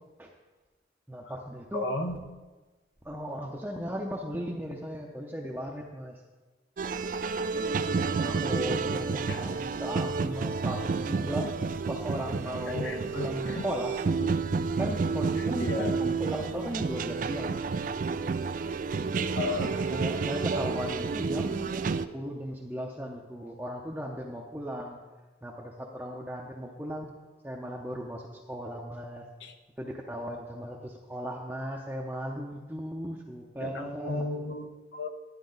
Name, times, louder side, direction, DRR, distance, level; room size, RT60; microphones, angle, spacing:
voice 1, 1.1-1.8 3.0-6.2 8.0-11.5 11.9-14.0 14.8-17.7 19.7-21.7 22.1-25.0 25.4-27.1 27.4-29.2 29.8-34.3, equal, 10° right, -2 dB, 0.7 m, -36 dB
voice 2, 1.7-2.2 9.3-9.4 12.7-13.6 14.2-14.4 15.4-15.9 19.3-19.7 29.4-29.5 33.6-35.1, left 2 dB, 80° left, 4 dB, 1.0 m, -34 dB
sound 1, 6.8-22.1, right 4 dB, 45° right, 0.3 m, -30 dB
11.5 x 9.6 x 3.9 m, 1.2 s
head